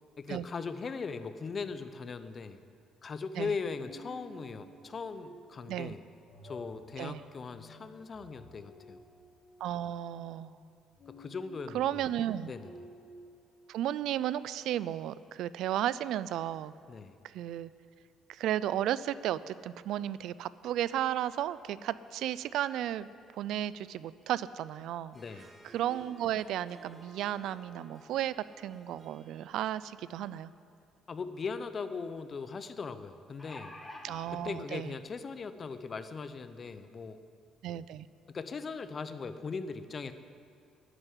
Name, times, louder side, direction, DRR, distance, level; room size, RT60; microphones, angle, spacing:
voice 1, 0.2-2.6 3.0-6.0 6.4-9.0 11.1-12.0 12.5-12.7 16.9-17.2 25.1-25.5 31.1-33.8 34.3-37.2 38.3-40.1, left 5 dB, 35° left, 11 dB, 0.7 m, -39 dB
sound 1, 3.8-14.0, left 1 dB, 50° left, 2.6 m, -54 dB
voice 2, 9.6-10.5 11.7-12.5 13.7-16.7 17.2-17.7 18.3-23.1 23.3-25.2 25.7-30.5 34.0-34.9 37.6-38.1, right 12 dB, 75° right, 17 dB, 0.4 m, -34 dB
Harp, 25.1-30.4, right 1 dB, 5° right, 1.6 m, -56 dB
sound 2, 31.0-31.1 31.4-31.5 33.1-34.3 35.2-35.3 35.7-35.8, left 1 dB, 15° left, 1.5 m, -46 dB
11.5 x 8.1 x 9.8 m, 2.3 s
cardioid pair, 130°, 0 cm